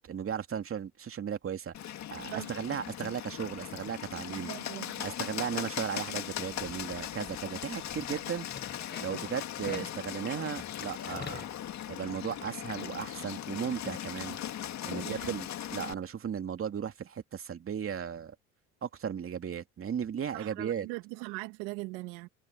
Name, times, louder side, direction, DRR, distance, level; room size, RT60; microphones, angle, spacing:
voice 1, 0.0-4.5 5.0-8.5 9.0-11.5 11.9-14.4 14.8-18.3 18.8-20.9, right 8 dB, 40° right, 2.7 m, -36 dB
Bird, 1.7-15.9, left 11 dB, 55° left, 2.3 m, -39 dB
voice 2, 4.3-5.1 15.0-15.4 20.3-22.3, right 25 dB, 80° right, 2.3 m, -41 dB
sound 1, 7.7-12.5, left 6 dB, 30° left, 1.2 m, -47 dB
supercardioid pair, 80°, 34 cm